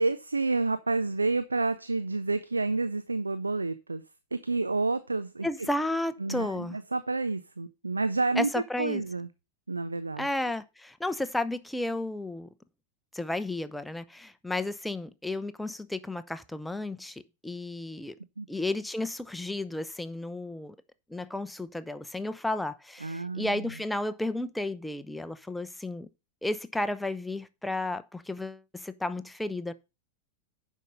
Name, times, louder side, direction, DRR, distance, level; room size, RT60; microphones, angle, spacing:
voice 1, 0.0-4.0 4.3-5.7 6.2-8.5 8.8-9.3 9.7-10.3 18.4-18.5 23.0-23.7, right 3 dB, 80° right, 0.5 m, -29 dB
voice 2, 5.4-6.8 8.4-9.0 10.2-12.5 13.1-18.1 18.5-20.8 21.1-26.1 26.4-29.7, left 2 dB, 5° left, 0.7 m, -33 dB
9.2 x 5.6 x 5.1 m
figure-of-eight pair, 90°, 0 cm